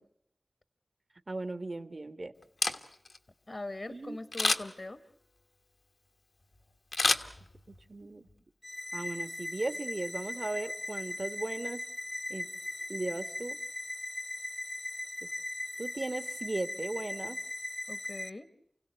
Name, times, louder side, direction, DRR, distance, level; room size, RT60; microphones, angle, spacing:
voice 1, 1.3-2.3 3.9-4.2 7.7-8.3 8.9-11.8 12.3-12.5 12.9-13.6 15.2-15.3 15.8-17.4, right 2 dB, 55° right, 10 dB, 1.4 m, -37 dB
Camera, 2.4-3.2 4.3-4.9 6.9-7.9 8.3-8.4, left 3 dB, 75° left, 1.4 m, -29 dB
voice 2, 3.5-5.0 17.9-18.5, left 2 dB, 50° left, 11 dB, 1.1 m, -41 dB
sound 1, 8.6-18.3, left 1 dB, 30° left, 0.9 m, -39 dB
29.5 x 16.5 x 8.1 m, 0.77 s
wide cardioid pair, 45°, 0 cm